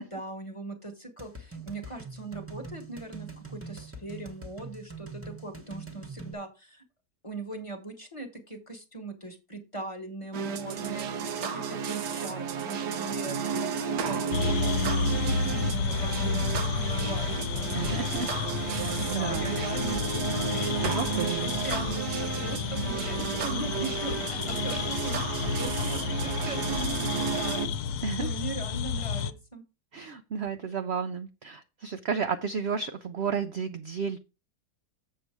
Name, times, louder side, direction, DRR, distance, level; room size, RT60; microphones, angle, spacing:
voice 1, 0.0-6.8 7.2-17.5 17.8-18.0 19.0-27.7 28.2-29.6, right 2 dB, 20° left, 1.3 m, -40 dB
sound 1, 1.2-6.3, right 4 dB, 10° right, 1.1 m, -43 dB
sound 2, 10.3-27.7, right 6 dB, 85° right, 1.5 m, -32 dB
sound 3, 14.3-29.3, left 5 dB, 75° left, 1.2 m, -31 dB
voice 2, 17.7-18.3 18.7-19.5 20.8-21.5 28.0-28.3 29.9-34.2, right 6 dB, 60° right, 0.7 m, -32 dB
7.6 x 6.7 x 4.6 m
omnidirectional pair, 1.7 m